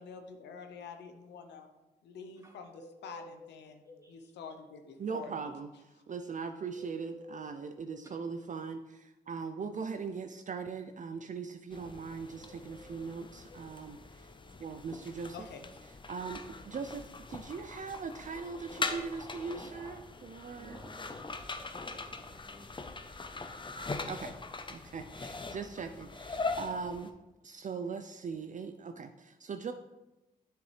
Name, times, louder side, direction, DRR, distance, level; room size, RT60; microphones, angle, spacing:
voice 1, 0.0-1.7 2.0-5.3 15.3-15.7, left 5 dB, 80° left, 6 dB, 0.7 m, -47 dB
sound 1, 2.7-4.1 6.7-8.1 12.3-13.7 18.3-19.7, left 1 dB, 55° left, 1.9 m, -53 dB
voice 2, 4.0-4.3 8.0-8.2 19.6-20.0 20.5-22.7, right 1 dB, 15° right, -2 dB, 2.4 m, -55 dB
voice 3, 5.0-14.3 14.6-15.5 16.1-20.8 24.0-24.3 24.7-27.1 27.4-29.7, right 5 dB, 45° right, 8 dB, 0.5 m, -40 dB
sound 2, 11.7-27.1, left 3 dB, 30° left, 0.7 m, -41 dB
7.5 x 6.7 x 3.3 m, 1.0 s
supercardioid pair, 45°, 18 cm